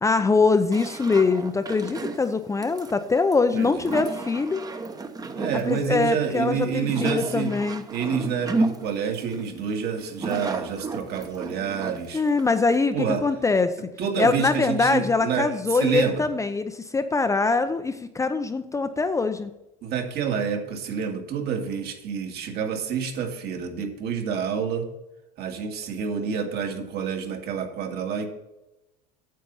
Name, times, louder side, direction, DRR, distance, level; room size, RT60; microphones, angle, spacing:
voice 1, 0.0-4.6 5.7-7.8 12.1-13.7 14.2-19.5, left 4 dB, 15° left, 9 dB, 0.7 m, -23 dB
sound 1, 0.7-12.8, right 3 dB, 20° right, 1.0 m, -33 dB
voice 2, 3.5-3.9 5.3-7.5 7.9-12.2 12.9-13.2 14.0-16.3 19.8-24.9 25.4-28.3, right 7 dB, 50° right, 4 dB, 2.2 m, -28 dB
9.2 x 7.6 x 5.6 m, 0.92 s
supercardioid pair, 115°, 20 cm